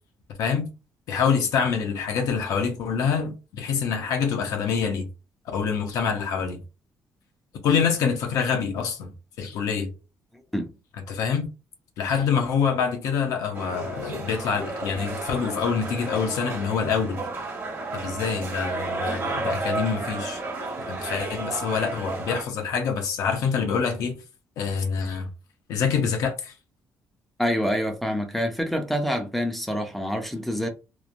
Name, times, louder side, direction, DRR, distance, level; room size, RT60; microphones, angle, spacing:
voice 1, 1.1-5.1 5.5-6.6 7.6-9.1 9.4-9.9 11.1-11.5 12.0-17.3 17.9-20.4 20.9-24.2 24.6-25.3 25.7-26.5, left 6 dB, 80° left, 0.6 m, -26 dB
sound 1, 13.5-22.4, right 3 dB, 40° right, 1.0 m, -32 dB
voice 2, 27.4-30.7, equal, ahead, 0.4 m, -26 dB
3.0 x 2.1 x 2.5 m
cardioid pair, 160°, 6 cm